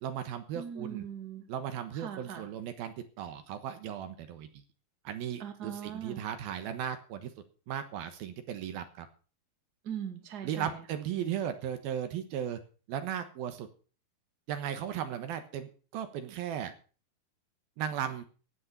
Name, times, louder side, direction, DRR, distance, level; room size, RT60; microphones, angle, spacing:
voice 1, 0.0-1.0 1.5-4.5 5.0-7.3 7.7-9.1 10.4-12.6 12.9-13.7 14.5-16.7 17.8-18.2, right 9 dB, 75° right, 9 dB, 3.0 m, -36 dB
voice 2, 0.5-1.5 1.9-2.5 5.4-6.2 9.8-10.8, right 8 dB, 30° right, 6 dB, 2.2 m, -40 dB
16.0 x 8.8 x 6.7 m, 0.38 s
omnidirectional pair, 4.5 m